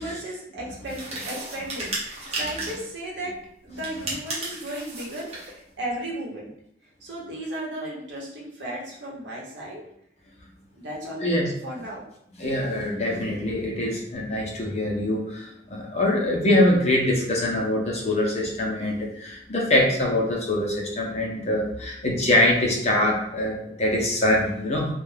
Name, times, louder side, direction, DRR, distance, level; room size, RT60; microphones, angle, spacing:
voice 1, 0.0-3.3 3.6-6.5 7.0-9.8 10.8-11.3 11.6-12.0, right 1 dB, 85° right, -4 dB, 0.9 m, -35 dB
sound 1, 0.8-2.9 3.7-5.5, right 2 dB, 35° right, 0.7 m, -34 dB
voice 2, 11.2-11.5 12.4-24.9, left 1 dB, 35° left, -2 dB, 0.6 m, -23 dB
2.3 x 2.2 x 3.2 m, 0.74 s
head